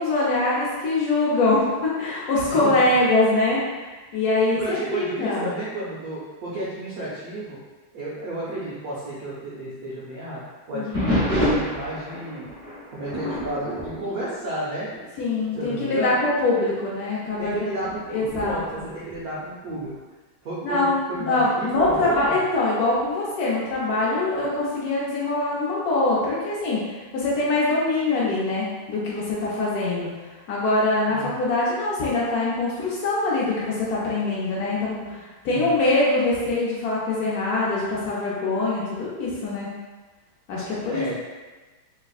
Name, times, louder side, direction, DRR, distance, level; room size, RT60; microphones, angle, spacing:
voice 1, 0.0-3.8 4.1-5.5 10.7-11.0 15.2-17.7 18.1-18.8 20.6-30.1 30.5-39.7 40.5-41.1, left 2 dB, 70° left, -7 dB, 0.9 m, -23 dB
voice 2, 4.6-7.6 7.9-10.4 10.7-12.5 12.9-15.1 15.6-16.1 17.4-20.0 20.4-22.4 31.1-31.4 35.1-35.2 35.5-35.8 40.8-41.1, right 1 dB, 70° right, -8 dB, 0.8 m, -32 dB
sound 1, 10.9-15.1 15.4-15.8 16.4-16.5 17.2-19.9 21.8-22.3, equal, 10° left, 1.1 m, -29 dB
3.3 x 3.2 x 2.3 m, 1.3 s
omnidirectional pair, 2.3 m